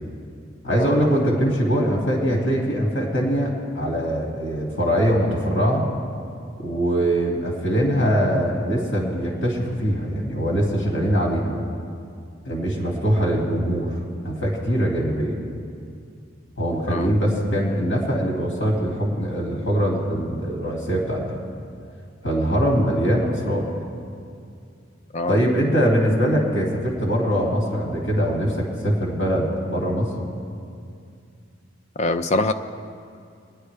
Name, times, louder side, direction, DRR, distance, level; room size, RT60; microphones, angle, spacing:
voice 1, 0.6-5.8 6.6-11.5 12.4-14.0 14.2-15.4 16.6-21.4 22.2-23.7 25.3-30.1, equal, 85° left, -2 dB, 2.2 m, -22 dB
voice 2, 16.9-17.2 25.1-25.4 32.0-32.5, left 2 dB, 35° left, 9 dB, 0.4 m, -24 dB
22.5 x 9.9 x 3.4 m, 2.4 s
head